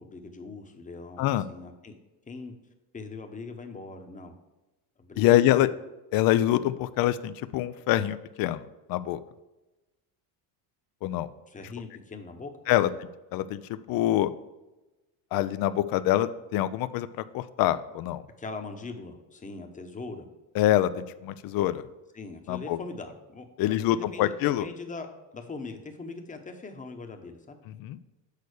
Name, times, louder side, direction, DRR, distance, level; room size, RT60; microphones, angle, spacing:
voice 1, 0.0-1.9 2.3-2.5 2.9-4.3 5.0-5.7 11.5-12.8 18.4-20.3 22.1-24.3 24.6-27.6, left 3 dB, 15° left, 5 dB, 1.0 m, -41 dB
voice 2, 5.2-5.7 6.1-8.6 8.9-9.2 11.0-11.3 12.7-12.9 13.3-14.3 15.3-17.1 17.3-18.2 20.6-21.8 22.5-22.8 23.6-24.7 27.8-28.0, left 13 dB, 50° left, 14 dB, 0.5 m, -25 dB
6.6 x 4.0 x 6.5 m, 1.0 s
supercardioid pair, 100°, 48 cm